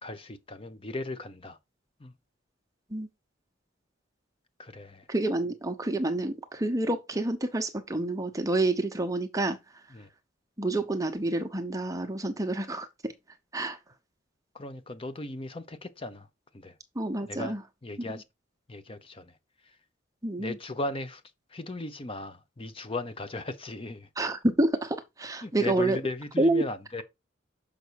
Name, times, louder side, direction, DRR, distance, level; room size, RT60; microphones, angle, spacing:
voice 1, 0.0-1.6 2.0-2.1 4.6-5.1 9.9-10.1 14.5-16.3 16.5-16.7 17.3-17.5 17.8-18.2 18.7-19.3 20.4-21.2 21.5-24.1 25.4-27.0, left 2 dB, 30° left, 0.7 m, -37 dB
voice 2, 5.1-9.6 10.6-13.1 13.5-13.8 16.9-17.6 18.0-18.2 20.2-20.6 24.2-26.0 26.4-26.6, right 2 dB, 20° right, 0.9 m, -28 dB
6.8 x 5.2 x 4.6 m
head